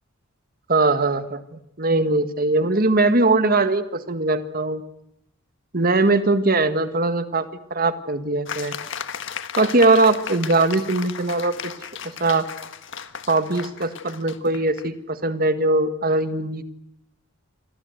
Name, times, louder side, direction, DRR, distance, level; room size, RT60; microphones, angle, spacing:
voice 1, 0.7-4.8 5.7-8.8 9.6-11.7 12.2-12.5 13.3-16.6, right 2 dB, 45° right, 10 dB, 1.8 m, -21 dB
sound 1, 8.5-14.9, left 7 dB, 60° left, 1.7 m, -35 dB
28.0 x 24.5 x 8.1 m, 0.79 s
head